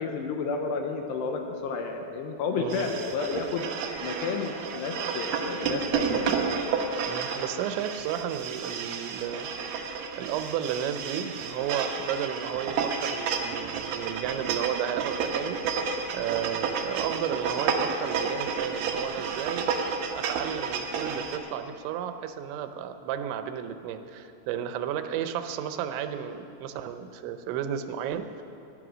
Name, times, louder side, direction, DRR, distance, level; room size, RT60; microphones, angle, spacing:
voice 1, 0.0-3.6 4.0-6.4, left 5 dB, 75° left, 4 dB, 2.8 m, -31 dB
voice 2, 2.5-2.9 7.1-9.5 10.2-15.6 16.1-19.7 20.1-28.4, right 9 dB, 85° right, 8 dB, 3.1 m, -33 dB
sound 1, 2.7-21.4, right 5 dB, 70° right, 2.1 m, -31 dB
17.5 x 11.5 x 6.2 m, 2.8 s
omnidirectional pair, 5.1 m